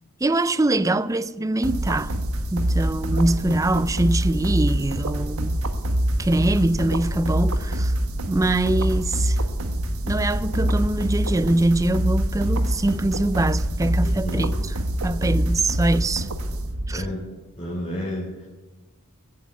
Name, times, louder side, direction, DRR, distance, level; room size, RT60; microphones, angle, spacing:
voice 1, 0.2-2.1 2.5-5.6 6.2-7.9 8.3-9.4 10.0-14.8 15.0-16.3 16.9-17.0, right 2 dB, 15° right, 0.4 m, -23 dB
sound 1, 1.6-17.1, right 1 dB, 75° right, 1.3 m, -25 dB
voice 2, 14.0-14.6 16.9-17.2 17.6-18.5, left 1 dB, 25° left, 3.1 m, -31 dB
15.5 x 8.6 x 9.3 m
head